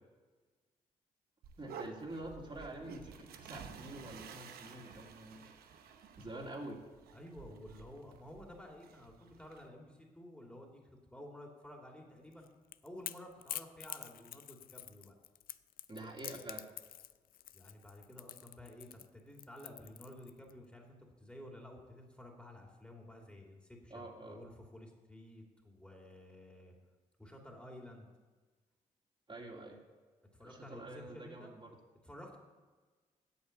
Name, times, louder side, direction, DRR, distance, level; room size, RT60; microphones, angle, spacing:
sound 1, 1.4-9.7, right 6 dB, 85° right, 0.9 m, -52 dB
voice 1, 1.6-5.9 6.2-6.8 15.9-16.7 23.9-24.4 29.3-29.8 30.4-31.8, right 1 dB, 35° right, -1 dB, 2.3 m, -47 dB
voice 2, 7.1-12.5 12.8-15.1 17.5-26.7 27.2-28.1 30.3-31.5 32.0-32.4, left 1 dB, 5° left, 0 dB, 2.7 m, -52 dB
Crackle / Crack, 12.3-20.5, left 12 dB, 70° left, 0.4 m, -47 dB
8.4 x 6.8 x 8.1 m, 1.4 s
supercardioid pair, 50°, 15 cm